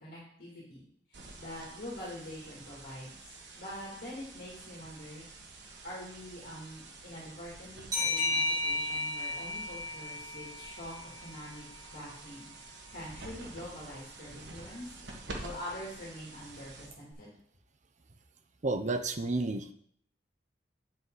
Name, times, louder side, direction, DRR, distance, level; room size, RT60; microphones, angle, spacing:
voice 1, 0.0-0.8 1.1-5.3 5.8-11.6 11.9-12.5 12.9-14.9 15.4-17.3, left 1 dB, 55° left, -6 dB, 2.7 m, -45 dB
sound 1, 1.1-17.1, right 2 dB, 75° right, 1.5 m, -49 dB
sound 2, 7.9-11.2, left 2 dB, 25° right, 4.3 m, -33 dB
voice 2, 18.6-19.7, right 2 dB, 45° right, 8 dB, 0.7 m, -31 dB
7.8 x 7.6 x 4.0 m, 0.62 s
head